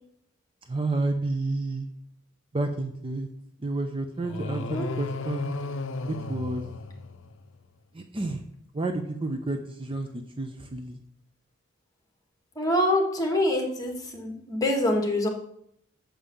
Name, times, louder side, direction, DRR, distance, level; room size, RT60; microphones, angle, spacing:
voice 1, 0.7-1.9 2.5-3.3 3.6-5.5 6.1-6.7 7.9-8.4 8.7-10.1 10.4-11.0, right 2 dB, 25° right, 6 dB, 0.6 m, -30 dB
sound 1, 4.2-7.5, left 3 dB, 65° left, 0.6 m, -34 dB
voice 2, 4.5-4.9 12.5-15.3, left 1 dB, 20° left, 2 dB, 1.7 m, -25 dB
7.4 x 5.4 x 6.9 m, 0.70 s
head